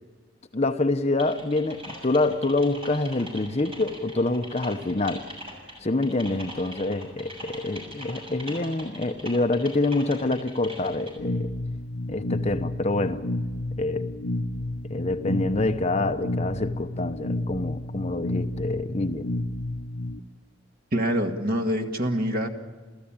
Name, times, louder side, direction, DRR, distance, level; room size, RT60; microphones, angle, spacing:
voice 1, 0.5-5.3 5.8-11.5 12.1-13.2 13.8-14.1 14.9-19.3, left 2 dB, 35° left, 0.8 m, -26 dB
Typing, 1.2-11.1, equal, 30° right, 6.9 m, -42 dB
sound 1, 11.2-20.2, left 1 dB, 85° left, 0.9 m, -31 dB
voice 2, 20.9-22.5, equal, 45° right, 1.9 m, -25 dB
30.0 x 14.0 x 8.8 m
head